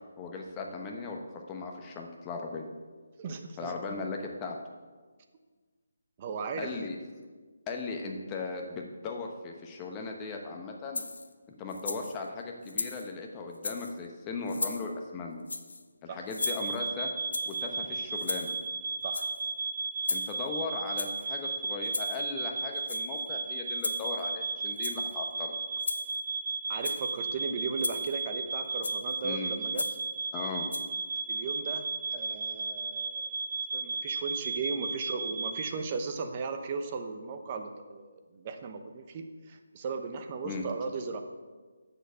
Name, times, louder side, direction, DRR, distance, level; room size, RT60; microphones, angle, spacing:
voice 1, 0.2-1.2 1.5-2.6 3.6-4.6 6.6-7.0 7.7-11.0 11.6-15.4 16.0-17.1 17.4-18.5 20.1-25.5 29.2-29.5 30.3-30.7 40.4-40.6, left 4 dB, 20° left, 1 dB, 1.1 m, -37 dB
voice 2, 3.2-3.7 6.2-6.7 16.1-16.3 19.0-19.3 26.7-29.8 31.3-31.9 32.1-33.3 33.7-41.2, right 4 dB, 30° right, 6 dB, 0.8 m, -36 dB
sound 1, 10.9-11.3 11.7-12.2 12.7-13.1 13.5-13.9 14.5-14.9 15.5-15.8 16.3-16.9 17.3-17.6 18.2-18.7 19.0-19.5 20.0-20.5 21.0-21.3 21.8-22.2 22.8-23.3 23.8-24.3 24.7-25.1 25.8-26.2 26.7-27.1 27.8-28.2 28.8-29.1 29.7-30.1 30.7-30.8, left 3 dB, 80° left, 0.8 m, -36 dB
sound 2, 16.4-35.7, right 4 dB, 55° right, 1.0 m, -34 dB
7.4 x 6.9 x 6.9 m, 1.4 s
figure-of-eight pair, 160°, 0 cm